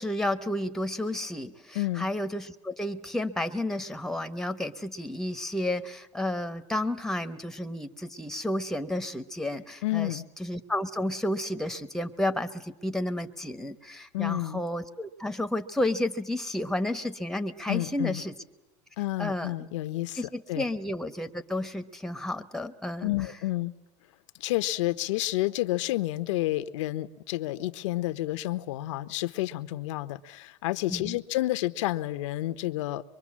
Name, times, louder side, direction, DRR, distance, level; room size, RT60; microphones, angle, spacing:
voice 1, 0.0-18.3 19.2-19.5 20.1-23.1 30.9-31.2, left 1 dB, 5° left, 9 dB, 1.0 m, -31 dB
voice 2, 1.7-2.1 9.8-10.2 14.1-14.6 17.7-18.2 19.0-20.2 20.5-20.6 23.0-23.7 24.4-33.0, left 17 dB, 80° left, 12 dB, 0.8 m, -30 dB
23.5 x 23.0 x 7.4 m, 0.96 s
supercardioid pair, 115°, 16 cm